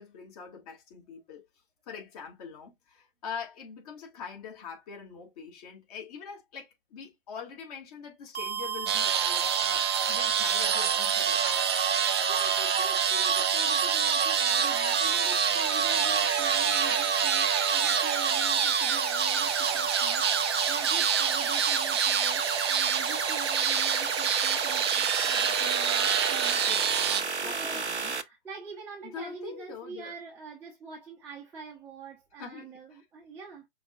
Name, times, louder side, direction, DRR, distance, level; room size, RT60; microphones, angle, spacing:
voice 1, 0.0-1.4 1.9-11.6 26.6-28.2 29.0-30.2 32.4-33.0, left 6 dB, 35° left, 2.3 m, -43 dB
sound 1, 8.3-28.2, right 4 dB, 85° right, 0.9 m, -32 dB
sound 2, 8.9-27.2, right 8 dB, 25° right, 0.5 m, -27 dB
voice 2, 12.3-26.6 27.4-33.7, right 5 dB, 5° right, 1.0 m, -45 dB
5.8 x 3.6 x 2.4 m
figure-of-eight pair, 130°, 33 cm